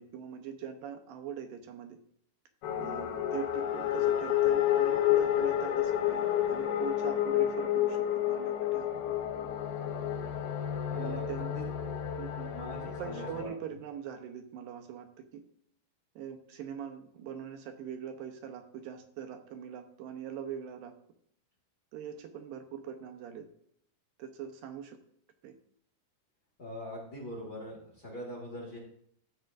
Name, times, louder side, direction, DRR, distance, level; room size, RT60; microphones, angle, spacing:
voice 1, 0.0-2.0 2.8-9.3 10.9-11.6 12.2-12.5 12.8-15.4 16.2-20.9 21.9-23.5 24.2-25.0 25.4-25.5, right 8 dB, 80° right, 6 dB, 2.5 m, -42 dB
sound 1, 2.6-13.4, left 11 dB, 90° left, 2.7 m, -30 dB
voice 2, 10.9-11.6 12.5-13.5 26.6-28.8, equal, 35° left, -3 dB, 1.8 m, -42 dB
13.5 x 7.9 x 2.6 m, 0.68 s
omnidirectional pair, 4.1 m